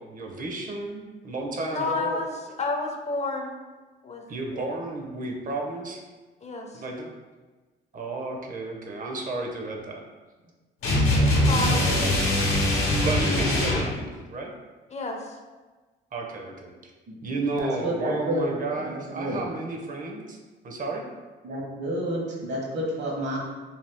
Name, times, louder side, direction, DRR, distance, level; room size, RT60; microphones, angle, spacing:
voice 1, 0.0-2.2 4.3-6.0 6.7-7.1 7.9-10.0 11.3-11.8 13.0-14.5 16.1-16.7 17.2-20.4 20.6-21.0, right 2 dB, 45° right, 1 dB, 0.6 m, -32 dB
voice 2, 1.7-3.6 4.0-4.2 4.5-4.7 6.4-6.8 11.2-11.9 14.9-15.4, left 3 dB, 35° left, 2 dB, 0.4 m, -31 dB
sound 1, 10.8-13.9, left 1 dB, 85° left, 0.8 m, -22 dB
voice 3, 11.8-12.2 17.1-17.2 17.6-18.4 18.8-19.4 21.4-23.4, right 1 dB, 60° right, -2 dB, 1.0 m, -30 dB
2.7 x 2.3 x 3.4 m, 1.3 s
cardioid pair, 90°, 20 cm